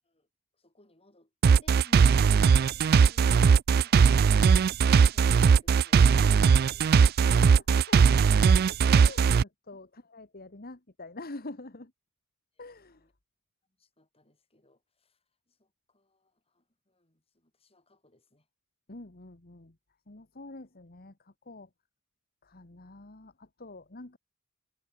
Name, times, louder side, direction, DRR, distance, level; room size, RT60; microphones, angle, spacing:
voice 1, 0.5-1.3 9.0-9.4 12.5-13.1 13.8-18.5, left 1 dB, 25° left, 7.8 m, -61 dB
sound 1, 1.4-9.4, right 6 dB, 45° right, 0.3 m, -19 dB
voice 2, 6.2-6.5 7.7-8.1 8.7-11.9 12.6-13.1 18.9-19.8 20.1-21.7 22.4-24.2, left 2 dB, 40° left, 1.6 m, -46 dB
head